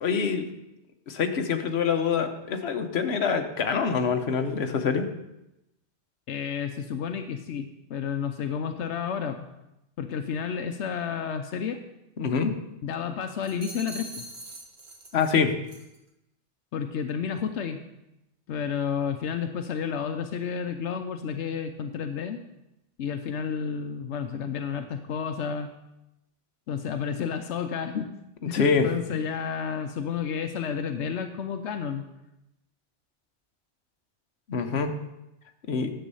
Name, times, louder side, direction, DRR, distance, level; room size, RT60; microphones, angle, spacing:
voice 1, 0.0-0.4 1.1-5.1 12.2-12.5 15.1-15.5 28.5-28.9 34.5-34.9 35.7-35.9, left 6 dB, 70° left, 5 dB, 1.2 m, -25 dB
voice 2, 6.3-9.5 10.0-11.8 12.8-14.2 16.7-17.8 18.5-22.4 23.0-25.7 26.7-28.1 28.5-32.0, left 7 dB, 90° left, 7 dB, 1.0 m, -31 dB
sound 1, 13.4-15.4 15.7-16.0, right 1 dB, 60° right, 1.8 m, -43 dB
10.5 x 7.7 x 5.4 m, 0.90 s
omnidirectional pair, 1.1 m